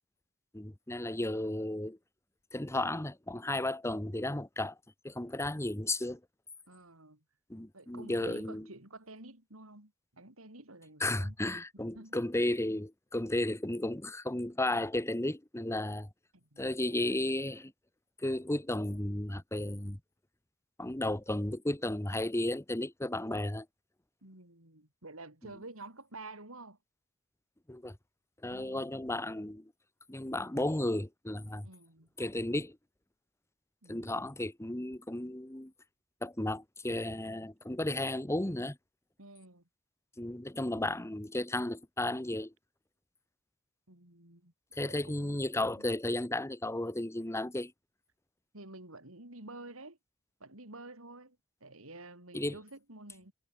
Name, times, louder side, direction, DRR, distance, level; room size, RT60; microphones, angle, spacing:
voice 1, 0.5-2.0 2.5-4.7 5.0-6.2 7.5-8.6 11.0-16.1 16.6-17.7 18.2-20.0 20.8-23.7 27.7-28.0 28.4-29.7 30.1-31.7 32.2-32.8 33.9-35.7 36.2-38.8 40.2-42.5 44.8-47.7 52.3-52.6, left 1 dB, 15° left, 1.3 m, -34 dB
voice 2, 6.7-7.2 7.7-11.3 11.7-12.2 16.4-16.9 24.2-26.8 28.5-29.0 31.6-32.1 33.8-34.2 39.2-39.6 43.9-44.5 44.8-45.8 48.5-50.0 50.4-53.3, right 2 dB, 80° right, 7.1 m, -50 dB
head